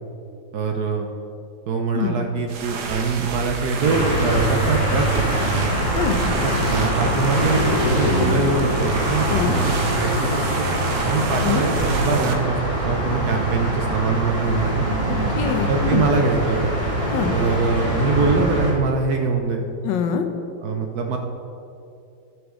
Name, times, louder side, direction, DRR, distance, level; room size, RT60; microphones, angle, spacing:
voice 1, 0.5-1.1 1.7-5.2 6.3-10.7 11.1-14.9 15.7-16.7 17.3-19.7 20.6-21.2, right 4 dB, 65° right, 3 dB, 1.0 m, -23 dB
sound 1, 2.4-12.3, right 4 dB, 80° right, 1.7 m, -31 dB
sound 2, 3.8-18.7, right 1 dB, 15° right, 2.0 m, -23 dB
voice 2, 15.3-16.1 17.1-17.3 19.8-20.3, left 9 dB, 70° left, 6 dB, 1.3 m, -24 dB
14.0 x 6.1 x 3.7 m, 2.7 s
omnidirectional pair, 2.2 m